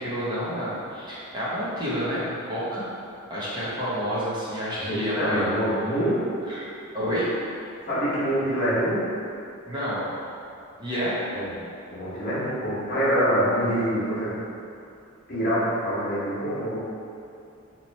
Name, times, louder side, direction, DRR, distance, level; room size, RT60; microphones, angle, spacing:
voice 1, 0.0-2.9 3.3-5.6 6.5-6.6 6.9-7.3 9.7-10.0 10.8-11.2, equal, 20° right, -11 dB, 0.9 m, -29 dB
voice 2, 4.8-6.2 7.8-9.0 11.3-11.5 11.9-14.3 15.3-16.8, equal, 45° left, -10 dB, 1.2 m, -25 dB
3.1 x 2.9 x 4.0 m, 2.6 s
head